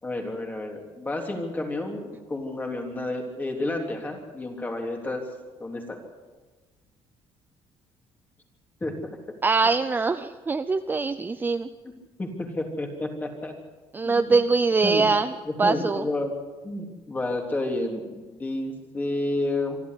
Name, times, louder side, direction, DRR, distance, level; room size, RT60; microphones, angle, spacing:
voice 1, 0.0-5.2 5.6-6.0 8.8-8.9 12.2-13.5 14.0-14.4 14.8-15.1 15.5-16.3 16.6-19.8, left 2 dB, 15° left, 2 dB, 3.5 m, -30 dB
voice 2, 9.4-11.7 13.9-15.3 15.6-16.0, right 4 dB, 20° right, 10 dB, 0.6 m, -23 dB
26.0 x 12.5 x 8.4 m, 1.3 s
cardioid pair, 140°, 10 cm